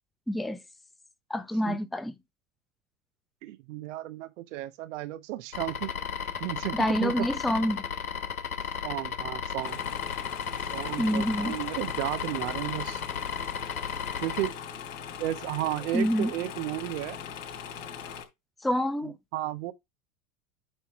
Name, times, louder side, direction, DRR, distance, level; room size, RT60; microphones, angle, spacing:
voice 1, 0.3-0.6 1.3-2.1 6.7-7.8 11.0-11.5 15.9-16.3 18.6-19.2, equal, ahead, 0.6 m, -27 dB
voice 2, 3.4-5.9 6.4-7.1 8.8-9.8 10.6-13.0 14.2-14.5 15.2-17.2 19.0-19.7, right 15 dB, 60° right, 1.0 m, -33 dB
sound 1, 5.5-14.5, left 7 dB, 90° left, 1.1 m, -34 dB
sound 2, 9.6-18.2, left 7 dB, 65° left, 3.0 m, -41 dB
9.0 x 4.5 x 3.5 m
hypercardioid pair, 85°, 42 cm